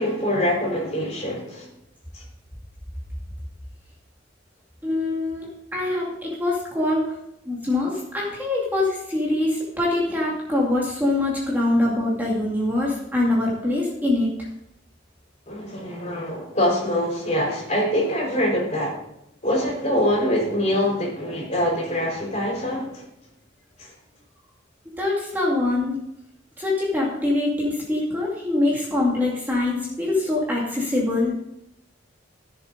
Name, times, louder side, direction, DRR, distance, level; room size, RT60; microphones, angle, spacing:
voice 1, 0.0-1.7 2.1-2.2 15.5-19.1 19.4-23.0 23.8-23.9, left 1 dB, 35° left, -2 dB, 4.5 m, -24 dB
voice 2, 4.8-7.2 7.5-14.3 25.0-26.0 26.6-31.3, left 2 dB, 10° right, -4 dB, 2.3 m, -24 dB
15.0 x 7.2 x 4.0 m, 0.80 s
head